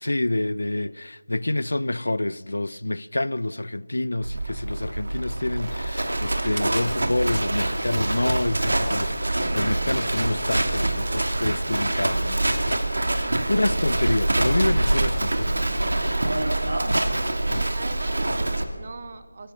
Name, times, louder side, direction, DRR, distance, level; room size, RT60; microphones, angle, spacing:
voice 1, 0.0-16.2 17.5-17.7, left 2 dB, 85° left, 0.5 m, -28 dB
Livestock farm animals working animals, 4.2-18.6, right 1 dB, 80° right, 2.5 m, -25 dB
voice 2, 13.2-13.6 17.4-19.5, right 4 dB, 30° right, 1.1 m, -41 dB
20.5 x 15.5 x 8.6 m
figure-of-eight pair, 175°, 0 cm